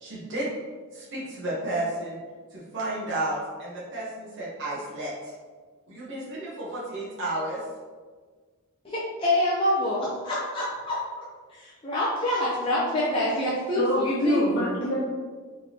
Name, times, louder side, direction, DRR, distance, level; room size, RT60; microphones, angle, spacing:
voice 1, 0.0-0.5 0.9-2.2 2.5-5.3 5.9-7.6, right 1 dB, 55° right, -7 dB, 1.0 m, -32 dB
voice 2, 8.8-11.2 11.5-14.5, left 1 dB, 25° left, -7 dB, 0.5 m, -26 dB
voice 3, 13.7-15.0, equal, 50° left, -9 dB, 1.5 m, -25 dB
3.9 x 3.8 x 2.8 m, 1.5 s
head